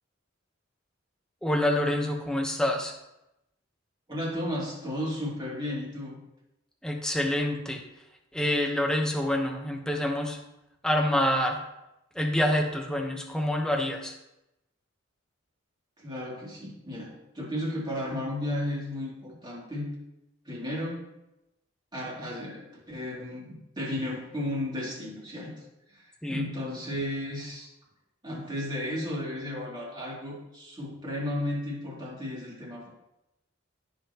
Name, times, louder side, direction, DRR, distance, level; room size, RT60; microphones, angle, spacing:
voice 1, 1.4-2.9 6.8-7.8 8.3-10.4 10.8-11.6 12.1-14.1 26.2-26.5, left 1 dB, 5° left, 1 dB, 0.9 m, -27 dB
voice 2, 4.1-6.2 16.0-19.9 20.4-21.1 21.9-25.5 25.9-27.7 28.2-32.9, left 1 dB, 20° right, -5 dB, 2.7 m, -34 dB
15.5 x 5.7 x 3.0 m, 0.89 s
head